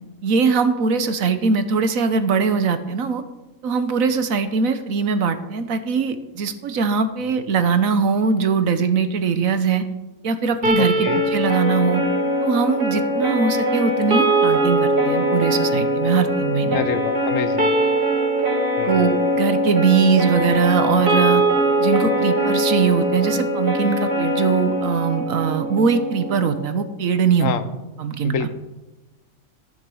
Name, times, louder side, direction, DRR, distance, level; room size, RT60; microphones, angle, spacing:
voice 1, 0.2-3.2 3.6-9.9 10.2-12.0 12.4-16.9 18.8-21.4 21.8-27.5 28.0-28.3, right 5 dB, 75° right, 10 dB, 1.4 m, -21 dB
sound 1, 10.6-26.7, right 1 dB, 40° right, 2.3 m, -21 dB
voice 2, 10.8-11.2 16.7-17.7 18.8-19.1 27.4-27.7 28.2-28.5, left 7 dB, 70° left, 11 dB, 1.2 m, -27 dB
14.0 x 7.2 x 6.3 m, 1.1 s
omnidirectional pair, 1.5 m